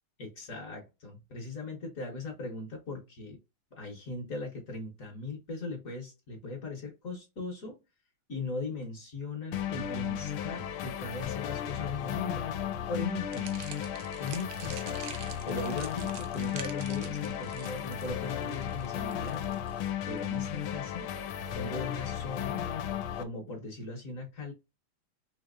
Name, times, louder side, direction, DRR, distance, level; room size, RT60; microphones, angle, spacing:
voice 1, 0.2-3.4 3.7-7.8 8.3-12.5 12.9-13.5 14.2-15.0 15.4-19.4 20.1-21.1 21.5-22.7 23.1-24.5, left 3 dB, 50° left, 1.2 m, -39 dB
sound 1, 9.5-23.2, left 9 dB, 90° left, 1.4 m, -35 dB
sound 2, 13.3-20.6, right 9 dB, 85° right, 1.5 m, -47 dB
4.1 x 2.8 x 2.5 m
omnidirectional pair, 2.2 m